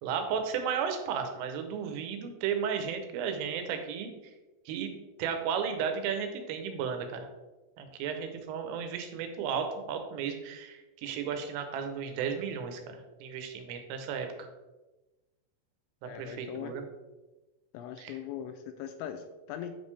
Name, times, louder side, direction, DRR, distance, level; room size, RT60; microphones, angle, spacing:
voice 1, 0.0-4.1 4.7-4.9 5.2-7.3 7.8-12.8 13.2-14.3 16.0-16.8 18.0-18.2, right 7 dB, 85° right, 6 dB, 3.5 m, -34 dB
voice 2, 16.0-16.8 17.7-19.7, left 9 dB, 85° left, 7 dB, 2.7 m, -40 dB
9.3 x 5.4 x 3.3 m, 1.1 s
omnidirectional pair, 5.7 m